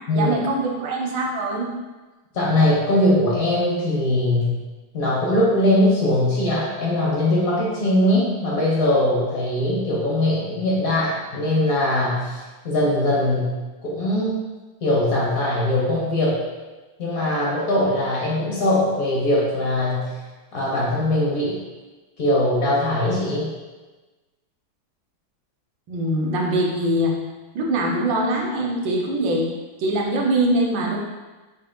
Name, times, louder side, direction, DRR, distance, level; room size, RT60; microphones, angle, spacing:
voice 1, 0.1-1.7 25.9-27.2 27.5-29.5 29.8-31.0, right 1 dB, 75° right, 0 dB, 1.3 m, -22 dB
voice 2, 2.3-4.6 4.9-12.3 12.6-13.5 13.8-14.4 14.8-16.4 17.0-20.1 20.5-21.6 22.2-23.5, left 1 dB, 50° left, -5 dB, 1.2 m, -21 dB
5.5 x 4.1 x 2.2 m, 1.2 s
omnidirectional pair, 2.2 m